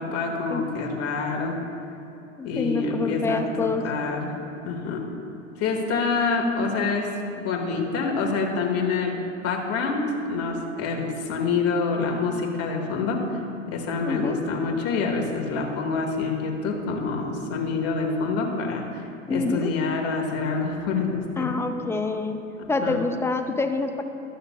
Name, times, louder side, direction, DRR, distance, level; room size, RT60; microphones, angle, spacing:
voice 1, 0.0-1.6 2.4-4.3 4.6-5.0 5.6-13.2 13.7-18.8 19.3-21.5 22.6-23.0, left 4 dB, 40° left, 1 dB, 1.8 m, -26 dB
voice 2, 2.4-3.9 14.0-14.4 19.3-19.7 21.4-22.4 22.7-24.0, left 3 dB, 5° left, 7 dB, 0.3 m, -27 dB
14.0 x 12.0 x 2.3 m, 3.0 s
hypercardioid pair, 90°, 38 cm